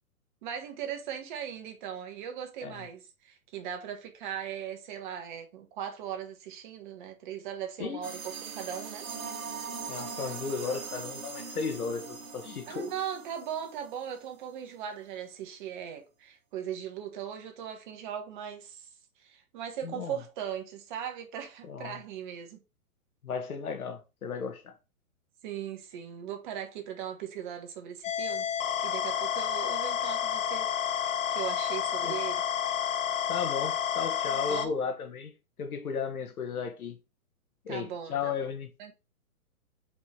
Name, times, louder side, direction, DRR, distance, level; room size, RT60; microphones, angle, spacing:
voice 1, 0.4-9.1 12.7-18.9 19.2-22.6 25.4-28.5 28.8-30.7 31.3-32.4 34.3-34.7 37.7-38.3 38.8-38.9, right 9 dB, 35° right, 1.5 m, -39 dB
sound 1, 8.0-14.3, right 5 dB, 65° right, 1.9 m, -41 dB
voice 2, 9.9-12.9 19.8-20.2 21.7-22.0 23.2-24.7 32.0-32.2 33.3-35.3 35.6-37.0 37.7-38.7, left 5 dB, 80° left, 1.8 m, -35 dB
sound 2, 28.0-34.7, left 8 dB, 60° left, 1.3 m, -30 dB
5.3 x 4.9 x 5.3 m
hypercardioid pair, 150°, 43 cm